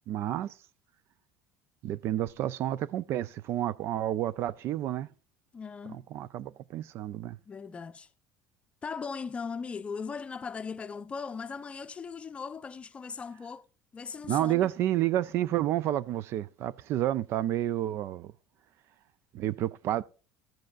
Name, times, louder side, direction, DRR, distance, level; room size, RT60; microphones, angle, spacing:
voice 1, 0.1-0.6 1.8-5.1 5.9-7.4 14.3-18.3 19.3-20.0, right 13 dB, 55° right, 0.3 m, -30 dB
voice 2, 5.5-6.1 7.5-8.1 8.8-13.6 13.9-14.7, left 5 dB, 20° left, 0.6 m, -38 dB
13.5 x 7.7 x 2.4 m
cardioid pair, 125°, 5 cm